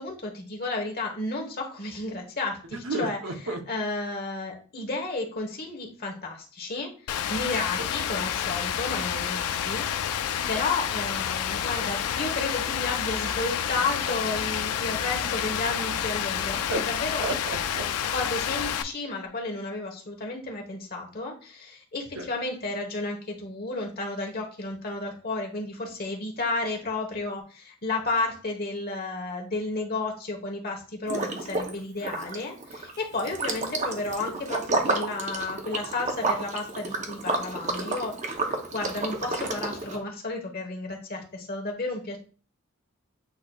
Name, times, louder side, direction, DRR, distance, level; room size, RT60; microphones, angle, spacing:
voice 1, 0.0-3.2 3.7-10.0 10.5-17.2 18.1-38.1 38.7-42.2, left 2 dB, 45° left, 1 dB, 1.1 m, -32 dB
voice 2, 2.7-3.6 7.8-7.9 15.2-15.3 16.7-16.9 17.2-17.9 22.1-22.3, right 2 dB, 65° right, 4 dB, 0.8 m, -32 dB
Rain, 7.1-18.8, left 9 dB, 90° left, 0.4 m, -29 dB
Liquid, 31.1-31.7 32.0-40.0, right 3 dB, 35° right, 0.6 m, -30 dB
8.2 x 2.8 x 2.3 m, 0.39 s
head